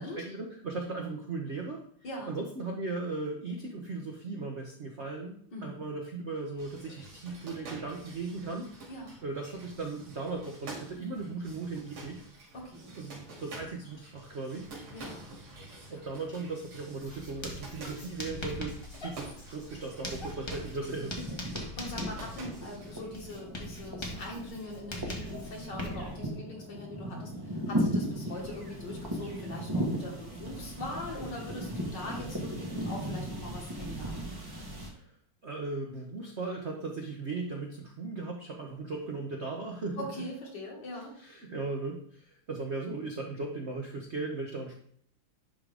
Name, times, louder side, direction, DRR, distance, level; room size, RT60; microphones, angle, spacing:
voice 1, 0.0-1.8 2.3-8.7 9.2-12.2 13.0-14.8 15.9-21.3 34.9-35.0 35.4-40.2 41.2-44.8, right 3 dB, 55° right, 1 dB, 0.7 m, -37 dB
voice 2, 2.0-2.4 5.5-5.8 8.9-9.2 12.5-13.0 14.9-15.3 15.8-16.0 21.5-34.3 40.0-41.1, left 1 dB, 55° left, -1 dB, 2.2 m, -42 dB
sound 1, 6.6-23.1, right 2 dB, 75° right, 3.2 m, -48 dB
Writing, 17.0-26.3, left 1 dB, 20° left, 0.7 m, -42 dB
sound 2, 19.8-20.4 20.6-34.9, right 1 dB, 20° right, 0.6 m, -37 dB
11.0 x 3.8 x 3.4 m, 0.63 s
omnidirectional pair, 2.4 m